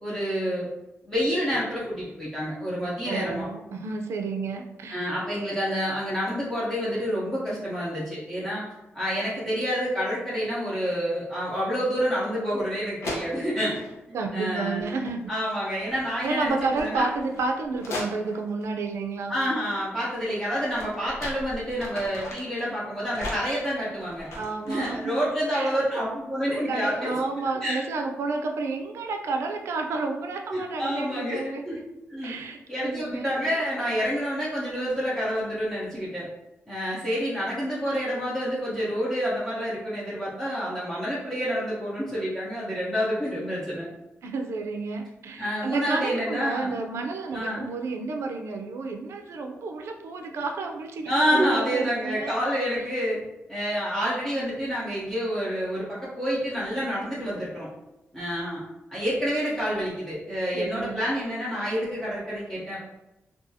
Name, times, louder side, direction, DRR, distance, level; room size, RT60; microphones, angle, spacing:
voice 1, 0.0-0.7 1.0-3.5 4.9-8.6 8.9-13.8 14.3-14.9 15.3-16.5 16.8-17.1 19.3-24.3 24.7-27.2 27.6-27.8 30.5-31.8 32.1-32.3 32.7-36.3 36.7-43.9 45.4-46.8 47.3-47.7 51.1-53.2 53.5-57.7 58.1-58.6 58.9-62.8, equal, 10° left, -9 dB, 0.7 m, -28 dB
voice 2, 3.1-5.0 14.1-15.3 16.2-19.4 24.3-25.2 25.5-25.8 26.7-31.6 32.2-33.3 44.2-52.3 60.5-61.0, right 3 dB, 80° right, 4 dB, 0.4 m, -31 dB
sound 1, 12.6-12.7 13.0-14.0 14.7-15.2 15.5-18.6 20.2-22.6 23.1-25.2, left 2 dB, 90° left, 0.7 m, -38 dB
2.6 x 2.3 x 2.6 m, 0.96 s
wide cardioid pair, 105°, 5 cm